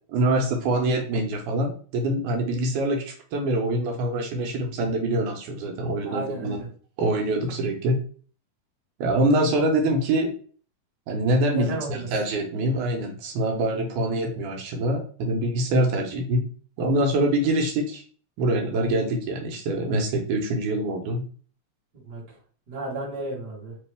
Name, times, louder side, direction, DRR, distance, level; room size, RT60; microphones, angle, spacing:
voice 1, 0.1-6.6 7.0-8.0 9.0-10.3 11.1-16.4 16.8-18.0 18.4-21.2, right 1 dB, 80° right, 2 dB, 2.2 m, -24 dB
voice 2, 6.0-6.7 11.5-12.1 22.0-22.4 22.7-23.8, right 2 dB, 40° right, -4 dB, 1.7 m, -33 dB
4.6 x 3.0 x 3.4 m, 0.43 s
omnidirectional pair, 3.5 m